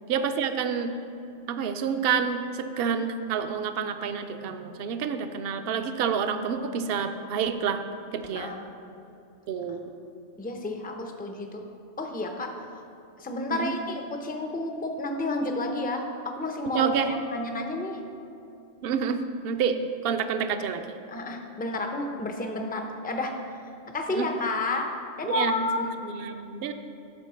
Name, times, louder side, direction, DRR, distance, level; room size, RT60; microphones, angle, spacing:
voice 1, 0.1-0.9 1.5-7.8 8.1-8.5 9.5-9.9 13.5-13.7 16.7-17.2 18.8-19.8 20.0-20.8 24.1-24.3 25.2-26.7, right 6 dB, 60° right, 8 dB, 0.7 m, -28 dB
voice 2, 10.4-11.6 12.0-12.5 13.2-18.0 21.1-23.6 23.9-24.9 25.2-25.8, left 2 dB, 15° left, 3 dB, 0.3 m, -31 dB
8.2 x 4.8 x 6.6 m, 2.7 s
omnidirectional pair, 1.3 m